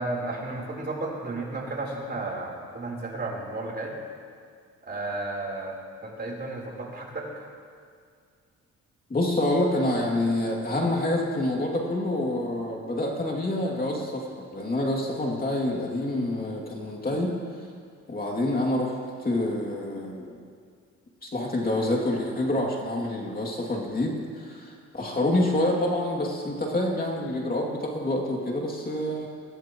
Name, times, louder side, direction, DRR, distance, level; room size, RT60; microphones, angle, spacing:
voice 1, 0.0-4.0 4.8-5.8 6.0-7.3, right 2 dB, 35° right, -2 dB, 4.1 m, -33 dB
voice 2, 9.1-17.3 18.1-18.9 19.2-20.4 21.2-29.3, left 1 dB, 30° left, -1 dB, 2.7 m, -27 dB
24.0 x 16.0 x 3.1 m, 2.1 s
cardioid pair, 90°, 30 cm